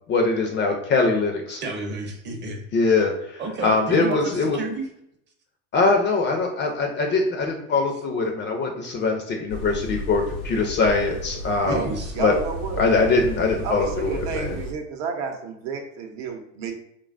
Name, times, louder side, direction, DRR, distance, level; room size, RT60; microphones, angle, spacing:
voice 1, 0.1-1.6 2.7-4.6 5.7-11.9 12.2-12.4 12.8-14.6, left 3 dB, 30° left, 3 dB, 0.4 m, -22 dB
voice 2, 1.6-2.6 3.4-4.9 11.6-12.1, right 2 dB, 25° right, 3 dB, 0.6 m, -30 dB
sound 1, 9.5-14.7, left 1 dB, 85° left, 0.6 m, -34 dB
voice 3, 12.1-12.8 13.6-16.7, right 5 dB, 70° right, 3 dB, 0.7 m, -31 dB
3.1 x 2.3 x 2.4 m, 0.76 s
hypercardioid pair, 95°, 41 cm